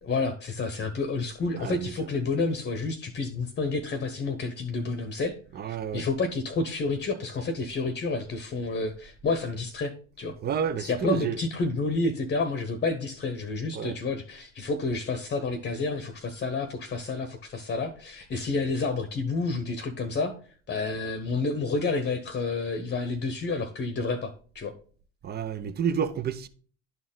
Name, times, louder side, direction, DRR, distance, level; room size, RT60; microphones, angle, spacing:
voice 1, 0.0-5.4 5.7-9.9 10.2-10.4 10.8-20.3 20.7-24.7, left 3 dB, 30° left, 1.0 m, -29 dB
voice 2, 1.6-1.9 5.6-6.0 10.4-11.4 13.7-13.9 25.2-26.5, right 7 dB, 25° right, 0.7 m, -29 dB
11.0 x 4.3 x 3.8 m
hypercardioid pair, 80°, 36 cm